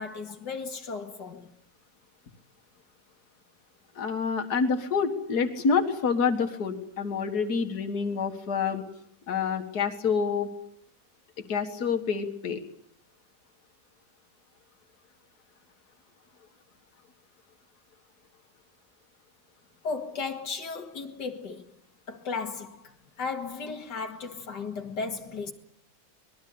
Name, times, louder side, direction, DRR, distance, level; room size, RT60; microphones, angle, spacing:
voice 1, 0.0-1.5 19.8-21.7 22.1-25.5, left 4 dB, 85° left, 2.7 m, -35 dB
voice 2, 4.0-8.8 9.3-10.5 11.5-12.6, left 5 dB, 65° left, 2.3 m, -27 dB
25.0 x 20.5 x 8.7 m
omnidirectional pair, 1.8 m